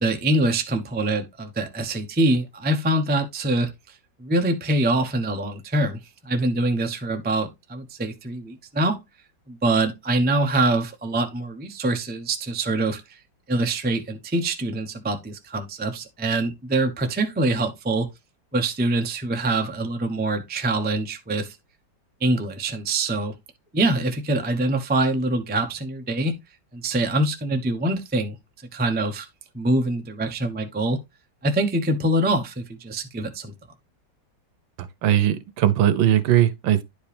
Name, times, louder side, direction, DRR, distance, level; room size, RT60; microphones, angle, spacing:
voice 1, 0.0-3.9 4.2-9.0 9.5-13.2 13.5-18.1 18.5-21.6 22.2-23.3 23.7-26.4 26.7-28.4 28.7-29.3 29.5-31.0 31.4-33.5, right 2 dB, 15° right, 0.4 m, -24 dB
voice 2, 34.8-36.8, right 11 dB, 80° right, 1.6 m, -20 dB
10.5 x 5.1 x 3.4 m
omnidirectional pair, 2.1 m